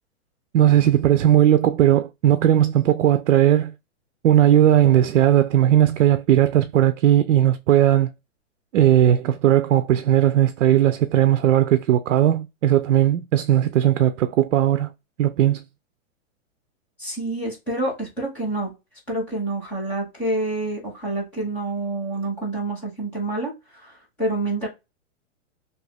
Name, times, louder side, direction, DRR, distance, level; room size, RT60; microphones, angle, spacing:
voice 1, 0.5-3.7 4.2-8.1 8.7-14.9 15.2-15.6, right 11 dB, 75° right, 0.5 m, -17 dB
voice 2, 17.0-18.7 19.1-23.5 23.8-24.7, right 2 dB, 5° left, 0.5 m, -27 dB
2.8 x 2.5 x 3.3 m
hypercardioid pair, 170°, 39 cm